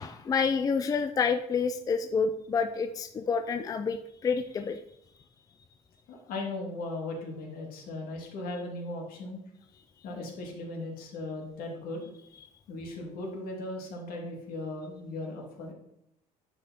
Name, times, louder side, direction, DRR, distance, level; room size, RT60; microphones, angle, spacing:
voice 1, 0.0-4.8, left 5 dB, 25° left, 7 dB, 0.4 m, -28 dB
voice 2, 6.1-9.4 10.0-12.1 12.7-15.7, left 2 dB, 70° left, 0 dB, 2.5 m, -37 dB
9.6 x 5.0 x 4.4 m, 0.77 s
cardioid pair, 135°, 15 cm